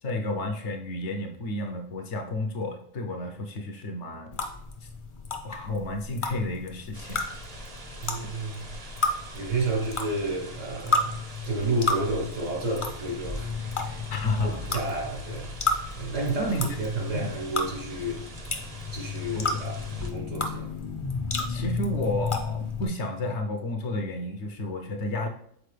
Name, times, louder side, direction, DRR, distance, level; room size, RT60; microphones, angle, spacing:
voice 1, 0.0-4.4 5.4-7.2 14.1-14.7 16.4-16.8 17.1-17.3 19.4-19.6 21.5-25.3, left 1 dB, 65° left, 1.1 m, -31 dB
sound 1, 4.3-22.9, left 3 dB, 35° left, 0.6 m, -32 dB
sound 2, 6.9-20.1, right 2 dB, 35° right, 0.7 m, -44 dB
voice 2, 8.0-8.7 9.3-13.5 13.8-14.0 14.4-15.5 15.9-18.3 18.9-20.7, right 2 dB, 80° right, 1.9 m, -31 dB
6.6 x 4.4 x 3.3 m
omnidirectional pair, 1.3 m